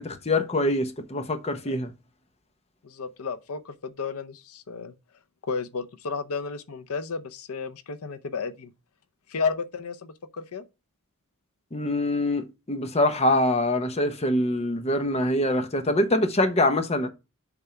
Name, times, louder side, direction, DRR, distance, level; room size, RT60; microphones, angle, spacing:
voice 1, 0.0-1.9 11.7-17.1, left 1 dB, 30° left, 0.9 m, -24 dB
voice 2, 2.8-4.9 5.5-8.7 9.3-10.6, left 5 dB, 85° left, 0.7 m, -32 dB
7.2 x 3.6 x 5.6 m
head